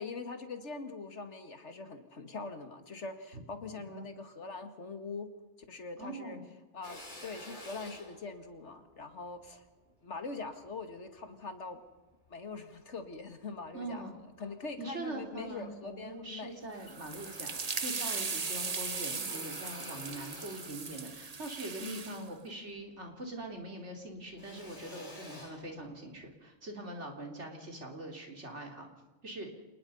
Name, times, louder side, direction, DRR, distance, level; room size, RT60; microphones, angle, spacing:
voice 1, 0.0-5.3 5.7-6.4 6.7-9.6 10.0-11.8 12.3-14.0 14.4-16.6 21.8-22.3, left 4 dB, 65° left, 8 dB, 2.3 m, -43 dB
voice 2, 6.0-6.5 13.7-14.1 14.8-28.9 29.2-29.5, right 2 dB, 65° right, 3 dB, 3.5 m, -43 dB
Drill, 6.8-11.4 11.9-13.1 13.6-14.5 14.9-15.0 15.2-16.2 16.5-23.2 23.4-26.3, left 1 dB, 40° left, 4.5 m, -51 dB
sound 1, 16.8-22.2, right 4 dB, 35° right, 1.0 m, -38 dB
27.0 x 20.0 x 5.6 m, 1.1 s
omnidirectional pair, 1.3 m